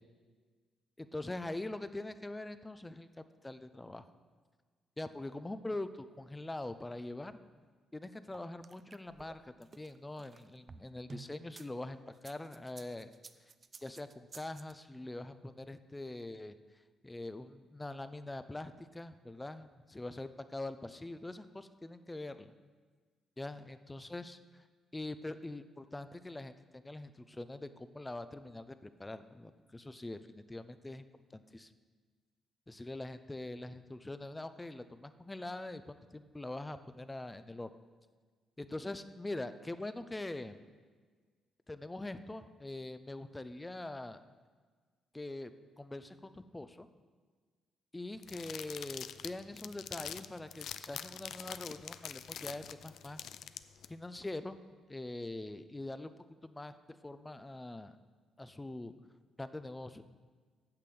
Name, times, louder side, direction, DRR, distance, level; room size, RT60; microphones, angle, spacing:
voice 1, 1.0-4.1 5.0-7.4 7.9-13.1 13.8-16.5 17.0-22.5 23.4-24.4 24.9-26.5 26.8-31.1 31.3-31.7 32.7-37.7 38.6-40.6 41.7-44.2 45.1-45.5 45.8-46.9 47.9-53.2 53.9-54.6 54.9-56.1 56.4-56.8 57.0-58.0 58.4-58.9 59.4-60.0, left 2 dB, 15° left, 11 dB, 0.5 m, -43 dB
sound 1, 8.3-11.7 12.1-14.7, right 4 dB, 35° right, 0.5 m, -53 dB
sound 2, 48.2-53.9, left 9 dB, 70° left, 0.4 m, -45 dB
8.7 x 6.7 x 7.7 m, 1.5 s
cardioid pair, 90°, 0 cm